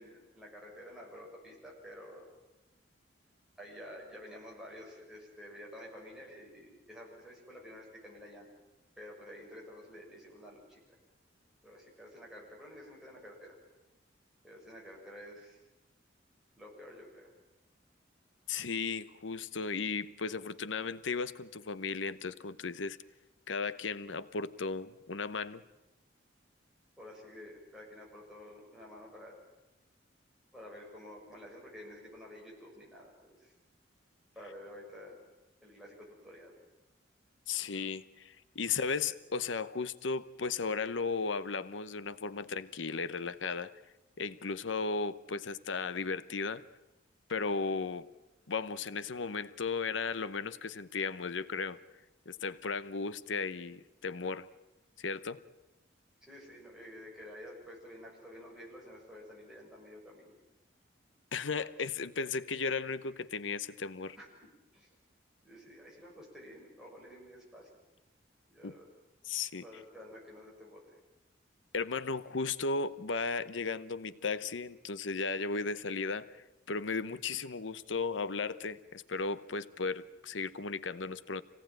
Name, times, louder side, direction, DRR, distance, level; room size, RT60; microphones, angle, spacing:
voice 1, 0.0-2.2 3.6-8.5 9.0-10.8 11.6-13.5 14.4-15.6 16.5-17.3 27.0-29.4 30.5-33.5 34.4-35.2 35.6-36.6 56.2-60.3 64.2-64.3 64.7-64.9 65.4-67.7 68.5-68.9 69.6-71.0, equal, 5° right, -4 dB, 7.0 m, -50 dB
voice 2, 18.5-23.0 23.5-25.6 37.5-43.7 44.2-46.6 47.3-48.1 48.5-51.8 52.3-54.5 55.0-55.4 61.3-64.2 68.6-68.7 69.2-69.6 71.7-81.4, left 4 dB, 80° left, 14 dB, 0.9 m, -35 dB
26.5 x 18.0 x 9.0 m, 0.98 s
head